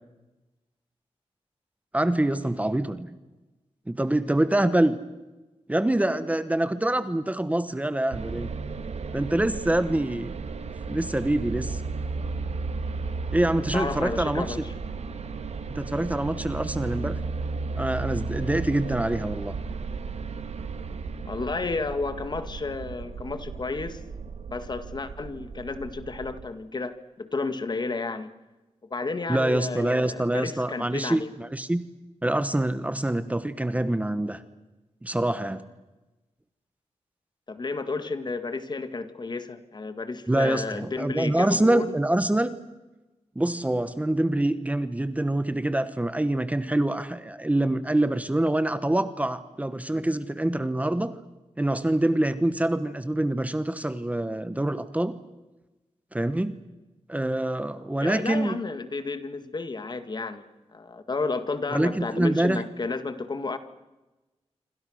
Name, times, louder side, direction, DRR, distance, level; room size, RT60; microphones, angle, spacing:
voice 1, 1.9-3.1 3.9-5.0 5.7-8.5 9.1-10.4 10.9-11.8 13.3-14.6 15.7-17.2 17.8-19.5 29.3-31.8 32.2-34.4 35.0-35.6 40.3-42.5 43.3-51.2 51.6-55.2 56.1-56.6 57.1-58.6 61.7-62.6, right 1 dB, 15° right, 12 dB, 1.2 m, -25 dB
sound 1, 8.1-26.5, right 4 dB, 80° right, 1.8 m, -34 dB
voice 2, 13.7-14.7 21.3-24.0 24.5-28.3 28.9-31.3 37.5-41.9 58.0-60.4 60.7-63.6, left 3 dB, 40° left, 10 dB, 1.9 m, -32 dB
27.0 x 26.0 x 6.5 m, 1.1 s
wide cardioid pair, 135°, 11 cm